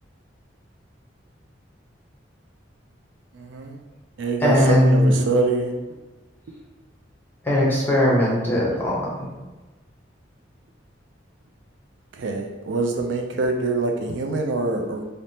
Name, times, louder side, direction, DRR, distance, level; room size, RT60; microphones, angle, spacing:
voice 1, 3.3-3.8 4.2-5.7 12.1-15.0, right 3 dB, 80° right, 3 dB, 0.4 m, -24 dB
voice 2, 4.4-5.1 7.4-9.3, left 1 dB, 10° left, -5 dB, 0.7 m, -19 dB
3.2 x 2.0 x 2.7 m, 1.2 s
head